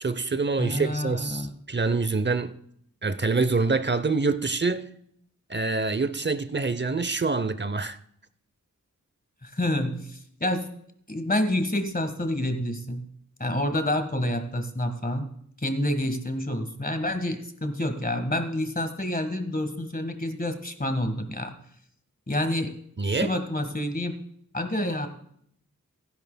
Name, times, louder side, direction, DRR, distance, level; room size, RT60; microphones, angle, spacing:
voice 1, 0.0-2.6 3.0-4.8 5.5-8.0 23.0-23.3, right 3 dB, 35° right, 0.7 m, -26 dB
voice 2, 0.6-1.5 9.4-10.7 11.1-13.1 13.4-15.3 15.6-21.5 22.3-22.7 23.0-24.2 24.5-25.1, left 1 dB, 25° left, 1.5 m, -28 dB
16.0 x 10.5 x 2.2 m
wide cardioid pair, 60°, 33 cm